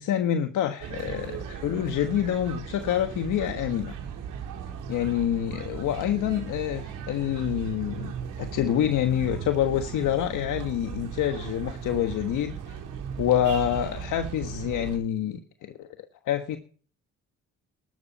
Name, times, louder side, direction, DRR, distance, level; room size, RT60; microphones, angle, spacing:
voice 1, 0.0-3.9 4.9-8.1 8.4-12.8 13.2-15.9 16.3-16.6, left 10 dB, 80° left, 1.5 m, -27 dB
sound 1, 0.8-15.0, right 7 dB, 90° right, 4.0 m, -37 dB
13.5 x 12.5 x 4.2 m
cardioid pair, 90°, 30 cm